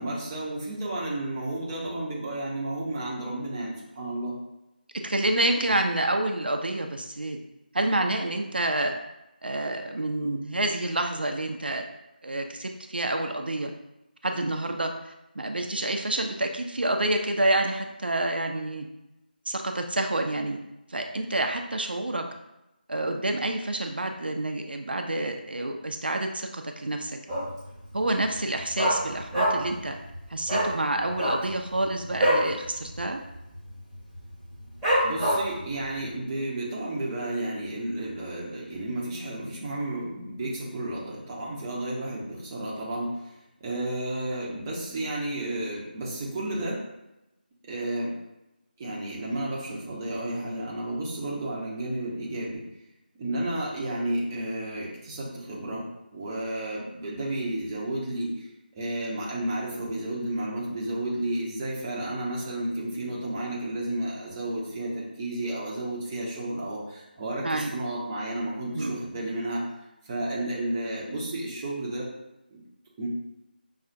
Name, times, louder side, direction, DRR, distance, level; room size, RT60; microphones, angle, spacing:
voice 1, 0.0-4.4 35.0-43.3 43.6-46.8 47.7-48.1 48.8-52.6 53.2-55.9 56.1-58.5 58.7-69.6 70.1-72.1 72.5-72.6 73.0-73.1, right 1 dB, 15° right, -5 dB, 0.6 m, -32 dB
voice 2, 4.9-7.4 7.7-9.0 9.4-11.9 12.2-13.7 14.2-18.9 19.5-20.6 20.9-22.2 22.9-27.1 27.9-30.0 30.3-33.2 67.4-67.7 68.7-69.0, right 1 dB, 70° right, 4 dB, 0.4 m, -28 dB
Dog, 27.3-27.7 28.0-28.1 28.4-29.8 30.1-30.2 30.5-30.7 31.1-32.5 32.9-33.0 33.3-33.7 34.1-34.2 34.8-35.6 36.1-36.2, equal, ahead, 1.0 m, -24 dB
5.4 x 2.4 x 2.5 m, 0.93 s
figure-of-eight pair, 160°, 5 cm